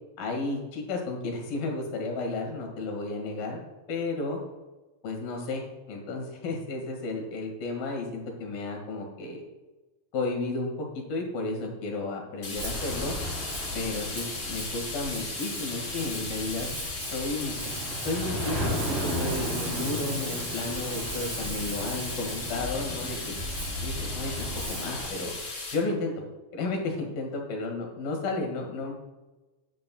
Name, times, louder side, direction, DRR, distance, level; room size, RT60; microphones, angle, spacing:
voice 1, 0.2-3.6 3.9-4.4 5.0-9.4 10.1-13.1 13.8-16.7 17.1-23.4 23.8-25.3 25.7-26.1 26.5-28.9, left 3 dB, 80° left, 2 dB, 3.8 m, -33 dB
sound 1, 12.4-25.7, left 3 dB, 45° left, 4.1 m, -37 dB
Ocean, 12.5-25.1, equal, 65° right, 5.0 m, -35 dB
14.0 x 10.0 x 2.3 m, 1.1 s
omnidirectional pair, 4.1 m